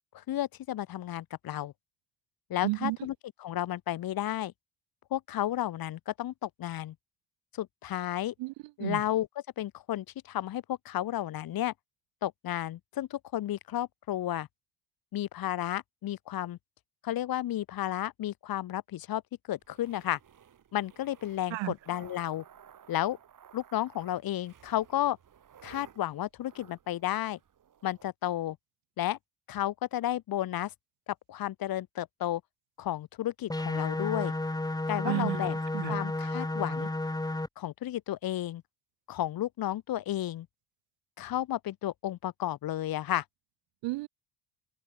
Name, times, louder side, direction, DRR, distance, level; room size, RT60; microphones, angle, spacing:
voice 1, 0.1-1.7 2.5-3.1 3.4-4.5 5.1-6.9 7.5-8.3 8.8-9.3 9.6-11.7 12.2-14.5 15.1-16.6 17.0-19.2 19.5-20.2 20.7-22.4 22.9-23.2 23.5-25.2 25.6-27.4 27.8-28.6 29.0-29.2 29.5-30.7 31.3-32.4 32.8-34.3 34.9-35.6 35.9-36.9 37.6-38.6 39.1-40.5 41.2-43.2, left 13 dB, 55° left, 1.2 m, -32 dB
voice 2, 2.6-3.0 8.4-8.5 8.8-9.0 21.5-21.7 35.0-36.0 43.8-44.1, right 21 dB, 80° right, 2.8 m, -32 dB
sound 1, 19.6-28.1, right 8 dB, 45° right, 5.9 m, -56 dB
sound 2, 33.5-37.5, left 2 dB, 10° left, 3.0 m, -32 dB
open air
cardioid pair, 100°, 44 cm